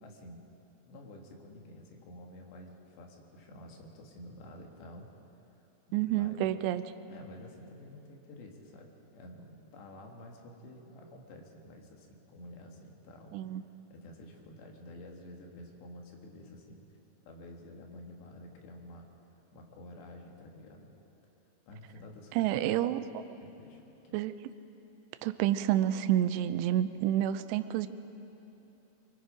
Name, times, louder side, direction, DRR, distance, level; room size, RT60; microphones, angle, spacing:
voice 1, 0.0-0.5 0.8-5.1 5.9-6.7 7.1-13.4 13.9-16.9 17.3-19.1 19.5-20.9 21.7-23.0 23.4-24.2, left 1 dB, 85° left, 1 dB, 4.1 m, -50 dB
voice 2, 5.9-6.8 13.3-13.6 22.3-23.2 24.1-24.4 25.2-27.9, right 12 dB, 85° right, 11 dB, 2.8 m, -29 dB
23.5 x 23.0 x 5.1 m, 3.0 s
omnidirectional pair, 4.8 m